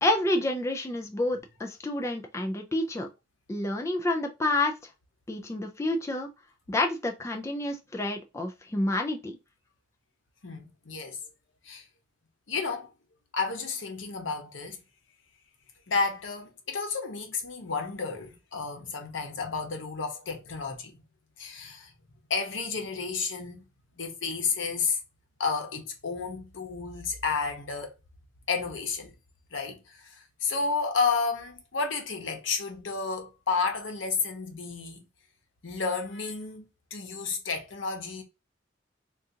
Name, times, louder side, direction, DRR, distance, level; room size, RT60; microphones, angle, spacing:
voice 1, 0.0-3.1 3.5-4.7 5.3-6.3 6.7-9.4, left 1 dB, 15° left, 0.4 m, -29 dB
voice 2, 10.4-11.2 11.6-11.8 12.5-12.9 13.3-14.8 15.9-21.0 21.4-21.9 22.3-23.6 24.0-25.0 25.4-27.9 28.5-29.1 29.5-35.1 35.6-38.2, left 4 dB, 90° left, 0.9 m, -31 dB
3.8 x 2.4 x 2.7 m
head